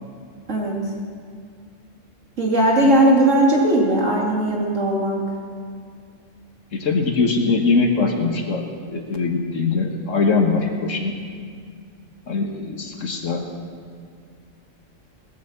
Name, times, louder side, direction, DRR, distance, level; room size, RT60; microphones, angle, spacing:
voice 1, 0.5-0.8 2.4-5.2, right 1 dB, 70° right, -2 dB, 2.8 m, -18 dB
voice 2, 6.7-8.6 8.9-11.1 12.3-13.4, left 4 dB, 75° left, 3 dB, 1.7 m, -21 dB
19.5 x 8.4 x 7.0 m, 2.2 s
omnidirectional pair, 1.3 m